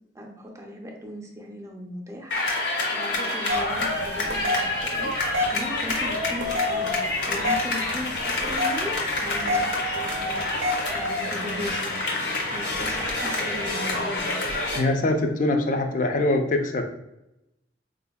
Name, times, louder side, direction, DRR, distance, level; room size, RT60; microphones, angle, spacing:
voice 1, 0.1-2.6 2.9-5.1 5.5-6.9 7.3-12.0 12.5-14.3, left 1 dB, 15° right, 1 dB, 0.5 m, -37 dB
sound 1, 2.3-14.8, left 2 dB, 85° left, 0.8 m, -27 dB
sound 2, 3.5-11.7, left 1 dB, 75° right, 0.5 m, -31 dB
voice 2, 14.7-16.8, left 2 dB, 45° left, 5 dB, 0.4 m, -23 dB
4.2 x 2.5 x 2.2 m, 0.89 s
head